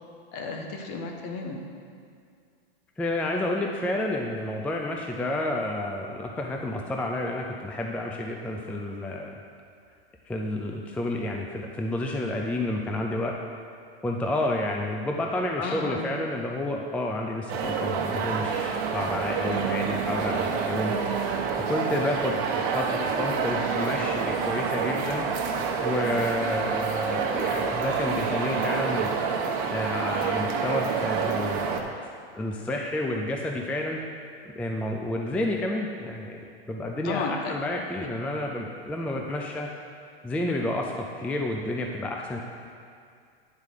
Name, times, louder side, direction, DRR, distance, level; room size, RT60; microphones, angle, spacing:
voice 1, 0.3-1.6 15.6-16.1 37.0-37.5, left 3 dB, 50° left, 3 dB, 1.4 m, -33 dB
voice 2, 3.0-9.4 10.3-13.4 14.0-21.4 21.7-22.4 22.7-25.3 25.8-29.1 29.7-31.9 32.3-34.0 34.6-39.7 40.2-42.4, left 1 dB, 5° left, 1 dB, 0.4 m, -30 dB
sound 1, 17.5-31.8, right 5 dB, 50° right, 1.1 m, -28 dB
9.4 x 4.8 x 6.5 m, 2.3 s
hypercardioid pair, 125°, 30 cm